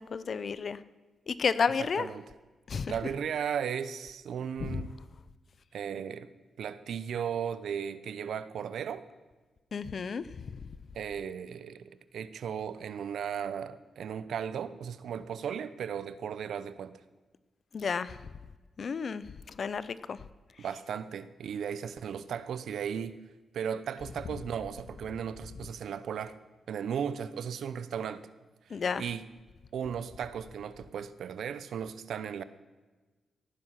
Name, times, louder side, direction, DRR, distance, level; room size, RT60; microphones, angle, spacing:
voice 1, 0.1-0.8 1.3-2.1 2.7-2.9 4.7-4.8 9.7-10.2 17.7-18.1 18.8-19.2 19.6-20.2 28.7-29.0, left 5 dB, 50° left, 16 dB, 0.7 m, -31 dB
voice 2, 1.8-2.3 2.9-4.9 5.7-6.3 6.6-9.1 10.9-17.0 20.6-23.2 23.5-26.4 26.7-28.3 28.7-29.3 29.7-32.4, right 8 dB, 80° right, 14 dB, 0.8 m, -36 dB
17.0 x 9.9 x 5.8 m, 1.3 s
cardioid pair, 100°, 0 cm